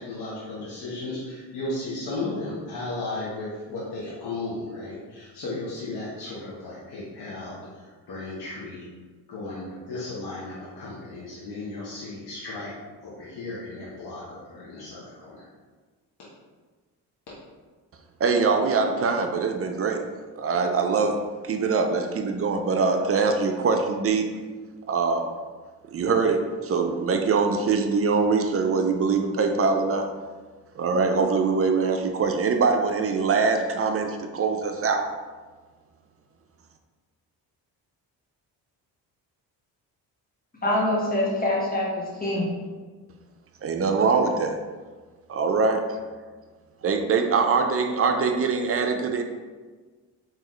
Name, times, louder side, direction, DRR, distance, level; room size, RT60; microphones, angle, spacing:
voice 1, 0.0-7.6 8.1-8.8 9.3-12.7 13.0-15.4, left 2 dB, 50° left, -8 dB, 1.1 m, -35 dB
voice 2, 18.2-20.0 20.4-21.2 21.4-24.2 24.9-25.3 25.9-30.1 30.8-35.0 43.6-44.5 45.3-46.0 46.8-49.2, right 4 dB, 30° right, 5 dB, 0.5 m, -23 dB
voice 3, 40.6-42.5, left 1 dB, 20° left, -5 dB, 1.4 m, -25 dB
3.7 x 2.9 x 3.1 m, 1.4 s
hypercardioid pair, 45°, 48 cm